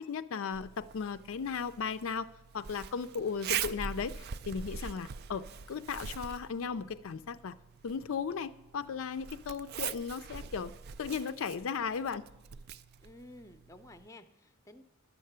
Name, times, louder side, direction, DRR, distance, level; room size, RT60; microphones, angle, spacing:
voice 1, 0.0-2.3 2.5-7.6 7.8-10.7 11.0-12.2, left 6 dB, 65° left, 12 dB, 0.4 m, -36 dB
Zipper (clothing), 0.5-14.1, right 8 dB, 50° right, 0.4 m, -43 dB
voice 2, 13.0-14.8, left 1 dB, 15° left, 9 dB, 0.6 m, -53 dB
11.5 x 6.6 x 8.0 m, 0.95 s
head